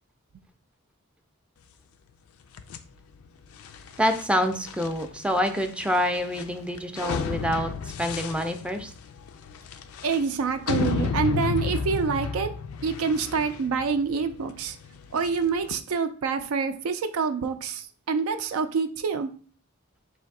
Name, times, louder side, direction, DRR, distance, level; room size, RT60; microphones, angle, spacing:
sound 1, 2.5-15.8, left 5 dB, 85° left, 0.4 m, -33 dB
voice 1, 4.0-8.9, equal, 5° right, 6 dB, 0.3 m, -27 dB
voice 2, 10.0-12.5 12.8-14.8 15.1-19.3, right 5 dB, 85° right, 8 dB, 0.4 m, -27 dB
3.3 x 2.6 x 4.6 m, 0.43 s
head